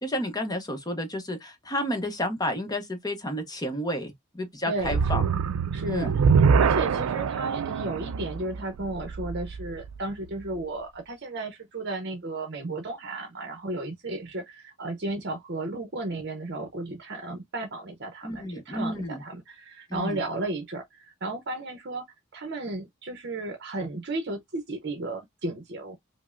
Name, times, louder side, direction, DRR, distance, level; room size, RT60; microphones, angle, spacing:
voice 1, 0.0-5.2 5.9-6.2 18.2-19.2 19.9-20.2, left 1 dB, 20° left, 0.8 m, -31 dB
voice 2, 4.7-5.3 5.7-22.1 22.3-26.0, right 2 dB, 55° right, 0.7 m, -34 dB
sound 1, 4.8-10.1, right 6 dB, 90° right, 0.4 m, -24 dB
5.1 x 2.0 x 2.4 m
head